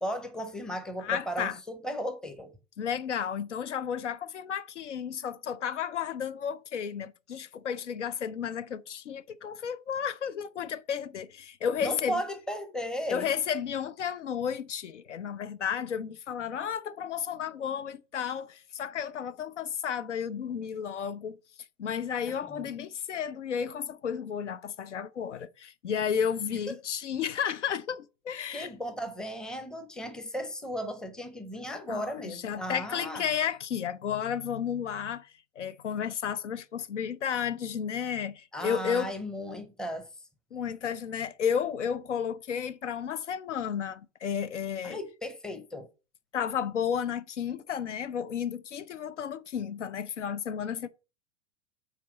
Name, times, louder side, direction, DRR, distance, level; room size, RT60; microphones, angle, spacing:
voice 1, 0.0-2.5 11.8-13.3 22.3-22.7 26.7-26.8 28.5-33.2 38.5-40.1 44.8-45.9, equal, ahead, 0.6 m, -35 dB
voice 2, 1.0-1.6 2.8-12.2 13.1-21.4 21.8-28.7 31.9-39.1 40.5-45.0 46.3-50.9, left 8 dB, 75° left, 0.5 m, -32 dB
5.8 x 4.3 x 5.0 m
figure-of-eight pair, 95°, 37 cm